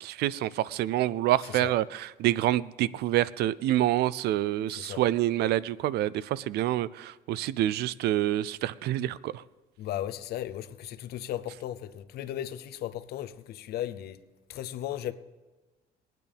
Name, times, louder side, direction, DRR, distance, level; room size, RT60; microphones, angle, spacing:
voice 1, 0.0-9.4, right 14 dB, 75° right, 0.4 m, -27 dB
voice 2, 4.7-5.0 9.8-14.2 14.5-15.1, left 12 dB, 70° left, 0.6 m, -36 dB
21.0 x 9.2 x 3.5 m
cardioid pair, 110°, 17 cm